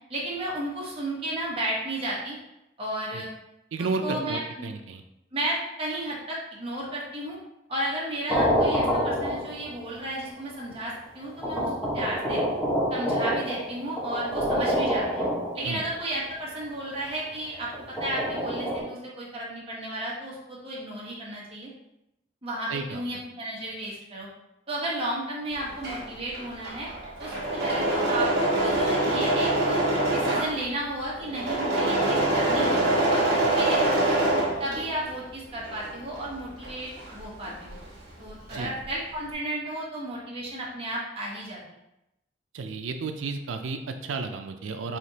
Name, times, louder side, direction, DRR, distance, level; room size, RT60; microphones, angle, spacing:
voice 1, 0.1-2.4 2.8-3.3 4.0-4.4 5.3-7.4 7.7-12.4 12.9-15.3 15.5-21.7 22.4-24.3 24.7-26.9 27.2-28.3 28.6-29.8 30.1-32.8 33.1-34.2 34.6-37.7 38.2-41.6, right 1 dB, 30° right, -5 dB, 1.1 m, -33 dB
voice 2, 3.7-5.0 15.6-15.8 22.7-23.2 38.5-38.7 42.5-45.0, right 4 dB, 90° right, 7 dB, 0.4 m, -32 dB
sound 1, 8.3-9.8 10.7-10.8 11.4-15.9 17.7-18.8, equal, 5° left, 1.0 m, -27 dB
Engine / Mechanisms, 25.6-35.2 35.5-37.9 38.1-38.9, right 1 dB, 55° right, 1.2 m, -25 dB
4.9 x 2.9 x 2.8 m, 0.88 s
head